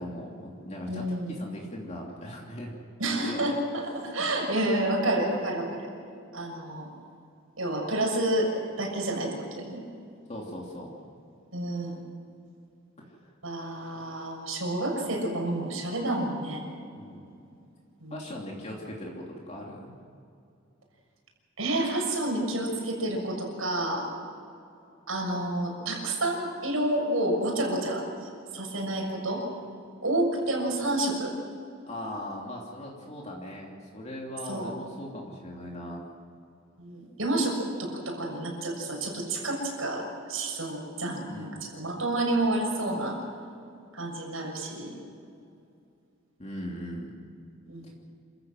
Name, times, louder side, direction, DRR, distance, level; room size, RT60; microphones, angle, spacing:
voice 1, 0.0-2.7 3.2-3.5 4.2-4.3 10.3-10.9 13.0-13.3 17.0-17.2 18.1-19.9 31.9-36.0 41.2-41.6 46.4-47.1, left 1 dB, 35° left, -2 dB, 3.0 m, -39 dB
voice 2, 0.9-1.3 3.0-5.9 6.3-6.9 7.6-8.5 8.8-9.8 11.5-12.0 13.4-16.6 18.0-18.2 21.6-24.1 25.1-29.4 30.0-31.3 34.5-34.7 36.8-43.2 43.9-44.9 47.7-47.9, right 1 dB, 85° right, 1 dB, 6.6 m, -29 dB
27.5 x 15.0 x 7.7 m, 2.5 s
head